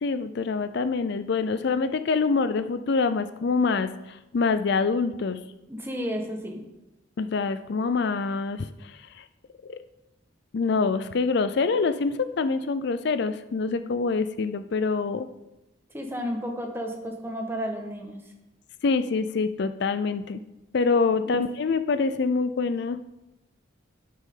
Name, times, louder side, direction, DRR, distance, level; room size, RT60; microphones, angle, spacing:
voice 1, 0.0-5.4 7.2-9.2 9.7-9.8 10.5-15.3 18.8-20.4 20.7-23.0, left 4 dB, 55° left, 11 dB, 0.4 m, -25 dB
voice 2, 5.7-6.6 15.9-18.2 21.2-21.3, equal, 10° right, 2 dB, 1.3 m, -32 dB
16.5 x 6.3 x 3.8 m, 0.96 s
head